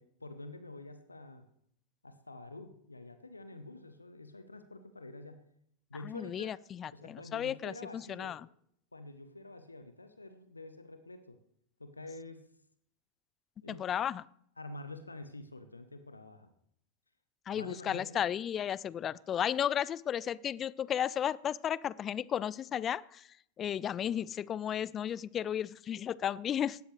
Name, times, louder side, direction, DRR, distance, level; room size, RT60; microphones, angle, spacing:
voice 1, 0.0-1.4 2.0-5.4 5.9-6.6 6.9-8.4 8.9-11.4 11.8-12.5 13.6-14.0 14.6-16.5 17.5-18.2, left 2 dB, 80° left, 1.1 m, -47 dB
voice 2, 6.0-8.4 13.7-14.2 17.5-23.3 23.6-26.8, left 9 dB, 25° left, 0.4 m, -34 dB
18.0 x 13.0 x 3.3 m
figure-of-eight pair, 90°, 0 cm